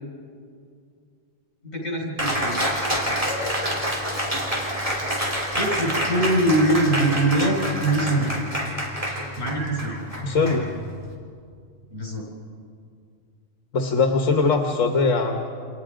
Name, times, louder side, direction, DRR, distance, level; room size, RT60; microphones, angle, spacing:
voice 1, 1.6-2.6 5.5-8.4 9.4-10.1 11.9-12.2, right 1 dB, 55° left, 0 dB, 6.3 m, -23 dB
Cheering, 2.2-11.1, equal, 25° right, 3.8 m, -27 dB
voice 2, 10.2-10.7 13.7-15.4, left 4 dB, 80° left, 3 dB, 1.6 m, -21 dB
29.0 x 27.0 x 5.1 m, 2.3 s
omnidirectional pair, 1.3 m